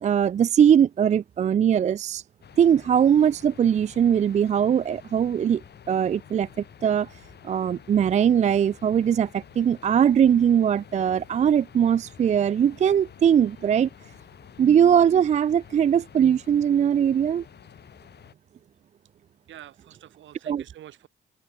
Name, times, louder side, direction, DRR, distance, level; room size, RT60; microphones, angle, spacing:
voice 1, 0.0-2.2 2.6-5.6 5.9-6.5 6.8-7.1 7.4-13.9 14.6-17.4 20.5-20.6, right 8 dB, 35° right, 0.4 m, -20 dB
sound 1, 2.4-18.3, left 8 dB, 55° left, 3.8 m, -49 dB
voice 2, 19.5-21.1, right 12 dB, 70° right, 2.1 m, -47 dB
cardioid pair, 90°, 20 cm